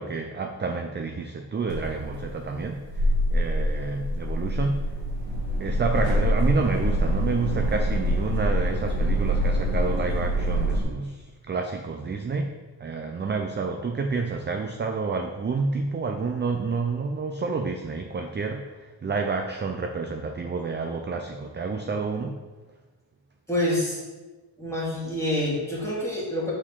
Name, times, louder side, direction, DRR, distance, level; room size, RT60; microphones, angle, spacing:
voice 1, 0.0-2.8 3.3-4.8 5.6-12.5 12.8-22.3, right 4 dB, 25° right, 3 dB, 0.4 m, -29 dB
sound 1, 1.7-10.8, equal, 80° right, 1.6 m, -25 dB
voice 2, 23.5-24.0 24.6-26.5, left 1 dB, 5° left, -6 dB, 2.0 m, -27 dB
7.2 x 4.5 x 3.7 m, 1.2 s
wide cardioid pair, 125°, 44 cm